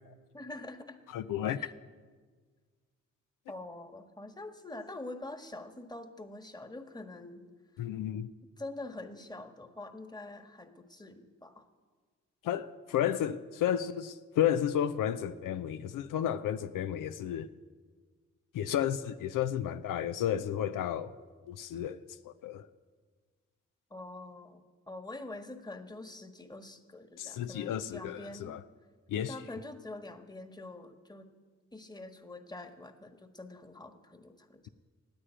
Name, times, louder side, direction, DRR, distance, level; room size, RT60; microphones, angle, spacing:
voice 1, 0.3-1.0 1.5-1.7 3.5-7.5 8.6-11.7 23.9-28.6 29.3-31.3 31.7-34.7, left 2 dB, 15° left, 1.4 m, -45 dB
voice 2, 1.1-1.6 7.8-8.3 12.4-17.5 18.5-21.1 21.5-22.0 22.2-22.6 27.2-28.6 29.1-29.4, left 10 dB, 80° left, 0.5 m, -32 dB
9.6 x 8.8 x 8.9 m
supercardioid pair, 45°, 32 cm